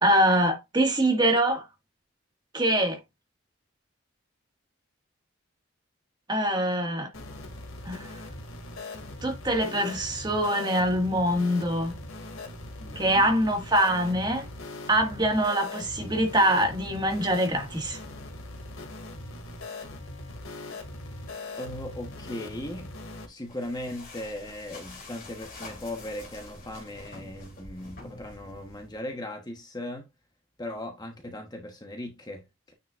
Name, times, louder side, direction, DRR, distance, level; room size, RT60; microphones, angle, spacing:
voice 1, 0.0-1.7 2.5-3.0 6.3-7.1 7.9-8.1 9.2-11.9 13.0-14.4 14.9-18.0, right 1 dB, 20° right, 1.8 m, -24 dB
sound 1, 7.1-23.3, left 2 dB, 75° left, 2.3 m, -40 dB
voice 2, 12.8-13.3 21.6-22.9 23.3-30.1 30.6-32.7, left 1 dB, 20° left, 1.1 m, -38 dB
sound 2, 23.4-29.0, left 3 dB, 40° left, 3.0 m, -46 dB
9.4 x 5.6 x 2.5 m
head